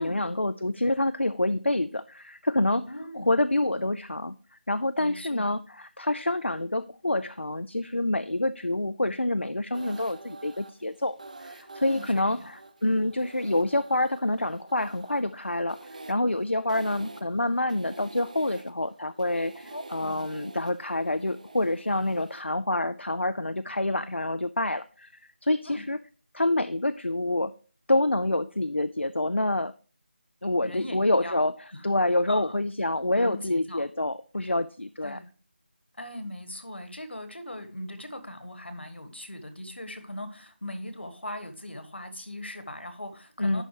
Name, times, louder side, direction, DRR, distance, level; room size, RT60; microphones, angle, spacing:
voice 1, 0.0-2.9 3.3-4.4 4.7-25.1 25.4-26.0 26.3-27.5 27.9-29.7 30.4-31.6 31.8-35.2 43.4-43.6, left 1 dB, 85° left, 13 dB, 0.4 m, -27 dB
voice 2, 2.9-3.3 5.0-5.5 11.9-12.5 19.6-20.3 25.6-25.9 30.6-31.4 31.7-31.9 32.3-32.5 33.1-33.8 35.0-35.3 36.0-43.6, left 1 dB, 70° left, 9 dB, 1.6 m, -39 dB
sound 1, 9.7-22.4, right 2 dB, 40° right, 0.7 m, -48 dB
11.0 x 4.2 x 4.8 m, 0.39 s
figure-of-eight pair, 160°, 6 cm